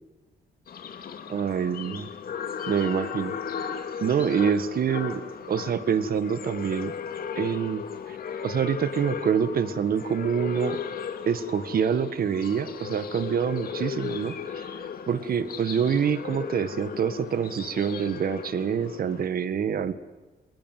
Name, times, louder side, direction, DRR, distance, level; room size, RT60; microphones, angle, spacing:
sound 1, 0.7-19.3, left 7 dB, 65° left, 2.4 m, -36 dB
voice 1, 1.3-2.1 2.7-3.4 4.0-5.2 5.5-6.9 7.4-10.8 11.2-14.7 15.1-19.9, right 7 dB, 60° right, 13 dB, 1.6 m, -26 dB
28.5 x 20.5 x 9.3 m, 1.2 s
cardioid pair, 110°, 17 cm